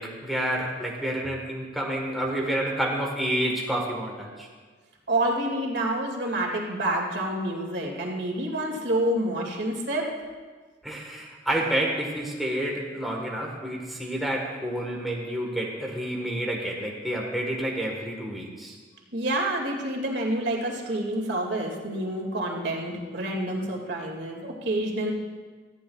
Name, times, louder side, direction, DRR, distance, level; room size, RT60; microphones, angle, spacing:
voice 1, 0.0-4.5 10.8-18.8, right 1 dB, ahead, -3 dB, 1.4 m, -29 dB
voice 2, 5.1-10.1 19.1-25.1, right 1 dB, 60° right, 0 dB, 2.2 m, -28 dB
18.5 x 14.0 x 2.4 m, 1.4 s
head